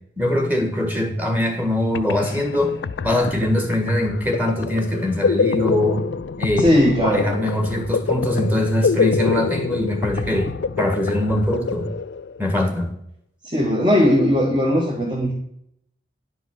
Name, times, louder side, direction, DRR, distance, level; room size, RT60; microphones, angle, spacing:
voice 1, 0.2-2.8 3.0-6.0 6.4-6.7 7.0-10.5 10.8-11.9 12.4-12.9, left 1 dB, 10° right, 4 dB, 1.6 m, -22 dB
sound 1, 1.7-1.8 1.9-12.5, left 5 dB, 80° left, 0.4 m, -26 dB
voice 2, 6.6-7.4 13.4-15.3, equal, 25° right, -2 dB, 1.5 m, -18 dB
10.5 x 5.3 x 6.4 m, 0.74 s
head